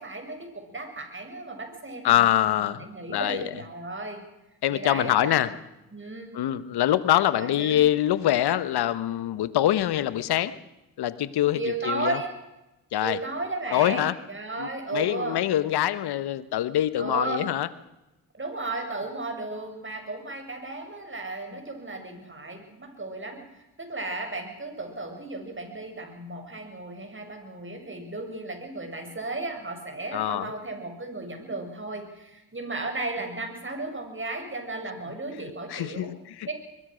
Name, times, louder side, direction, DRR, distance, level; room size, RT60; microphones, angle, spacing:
voice 1, 0.0-4.2 4.7-5.6 5.9-6.3 7.3-7.8 11.5-12.3 13.0-15.4 17.0-17.5 18.3-23.4 23.8-36.1 36.5-36.6, right 2 dB, 30° right, 5 dB, 7.2 m, -34 dB
voice 2, 2.0-3.5 4.6-5.5 6.3-10.6 11.0-12.2 12.9-13.2 13.7-14.1 14.6-17.7 30.1-30.5 35.7-36.5, left 12 dB, 80° left, 16 dB, 1.2 m, -24 dB
22.5 x 21.0 x 6.4 m, 0.97 s
supercardioid pair, 50°, 38 cm